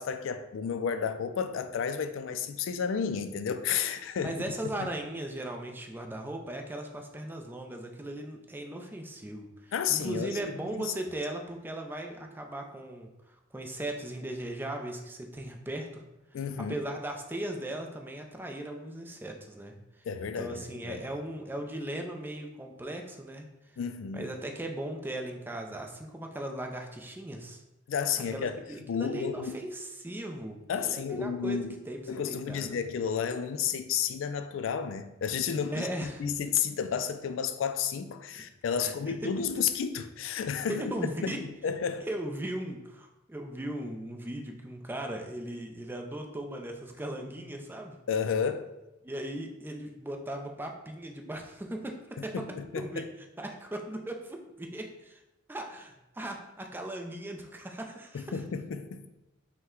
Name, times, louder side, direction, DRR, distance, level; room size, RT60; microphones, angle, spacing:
voice 1, 0.0-4.3 4.8-4.9 9.7-10.9 16.3-16.7 20.1-21.0 23.8-24.3 27.9-28.6 28.9-29.5 30.7-31.7 32.1-40.9 41.2-42.1 48.1-48.7 52.2-53.1 58.1-59.1, left 7 dB, 75° left, 0.3 m, -32 dB
voice 2, 4.2-16.0 16.7-19.8 20.4-23.5 24.1-27.6 28.3-32.8 35.7-36.2 38.3-38.4 38.8-39.4 40.7-41.4 42.1-48.0 49.0-53.0 53.4-55.2 55.5-58.3, right 1 dB, 10° right, 0.4 m, -38 dB
5.5 x 2.2 x 3.6 m
head